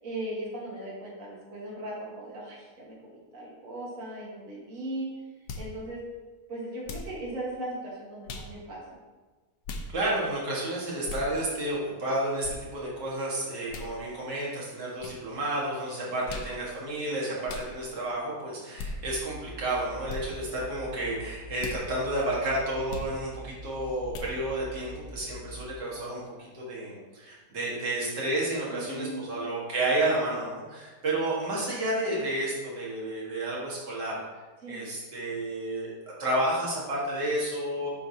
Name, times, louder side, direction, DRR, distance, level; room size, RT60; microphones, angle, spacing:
voice 1, 0.0-5.1 5.6-6.0 6.5-9.0 28.7-29.3 34.6-34.8, right 1 dB, 50° right, -5 dB, 2.0 m, -38 dB
sound 1, 5.5-5.7 6.8-7.1 8.3-8.5 9.6-9.9 11.1-11.3 12.4-12.6 13.7-13.9 15.0-15.2 16.3-16.5 17.5-17.7 18.8-18.9 20.1-20.2 21.6-21.8 22.9-23.1 24.1-24.3, left 3 dB, 80° left, 1.4 m, -37 dB
voice 2, 9.9-34.3 34.7-35.9 36.2-37.9, right 1 dB, 90° right, -6 dB, 2.4 m, -31 dB
sound 2, 18.8-25.6, equal, 40° left, 1.4 m, -45 dB
8.0 x 6.0 x 2.8 m, 1.3 s
omnidirectional pair, 1.8 m